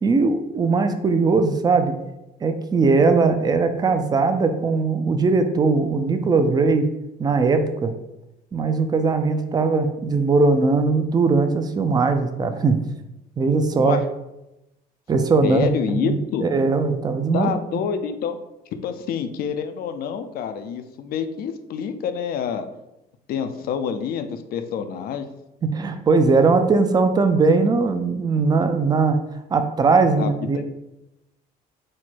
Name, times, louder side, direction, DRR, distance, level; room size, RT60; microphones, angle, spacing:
voice 1, 0.0-2.0 2.4-6.8 7.2-7.9 8.5-12.8 13.4-14.0 15.1-15.6 15.9-17.5 25.6-29.2 29.5-30.7, right 4 dB, 25° right, 8 dB, 0.4 m, -19 dB
voice 2, 13.7-14.1 15.4-16.4 17.3-18.4 18.8-22.7 23.3-25.3 30.2-30.6, left 7 dB, 65° left, 9 dB, 0.4 m, -27 dB
4.3 x 2.1 x 4.4 m, 0.91 s
cardioid pair, 110°, 17 cm